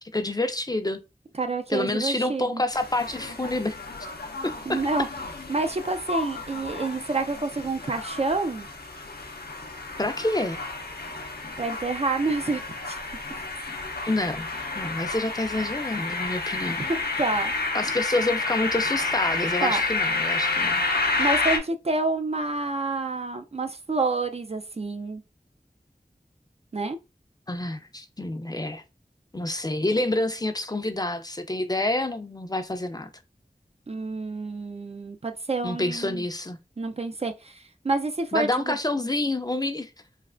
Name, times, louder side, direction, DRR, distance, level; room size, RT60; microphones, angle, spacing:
voice 1, 0.1-1.0 1.7-3.8 4.4-5.1 10.0-10.6 14.0-14.5 14.8-16.9 17.7-20.9 27.5-28.8 29.3-33.1 35.6-36.6 38.3-39.9, left 2 dB, 25° left, 0.4 m, -28 dB
voice 2, 1.4-2.6 4.7-5.1 5.5-8.7 11.6-13.0 16.9-17.5 19.6-19.8 21.2-25.2 26.7-27.0 33.9-36.2 36.8-38.8, right 3 dB, 40° right, 0.4 m, -28 dB
sound 1, 2.7-21.6, left 3 dB, 85° left, 0.5 m, -30 dB
3.2 x 2.3 x 2.4 m
wide cardioid pair, 45°, 16 cm